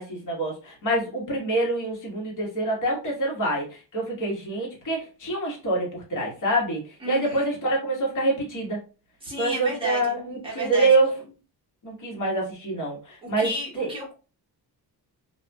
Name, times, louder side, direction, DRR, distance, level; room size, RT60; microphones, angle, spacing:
voice 1, 0.0-8.8 9.4-11.1 11.8-13.5 13.7-13.9, right 2 dB, 50° left, -2 dB, 1.4 m, -26 dB
voice 2, 7.0-7.5 9.2-10.1 10.4-10.9 13.2-14.1, right 1 dB, 15° right, -3 dB, 1.2 m, -32 dB
2.6 x 2.6 x 2.3 m, 0.33 s
cardioid pair, 125°, 39 cm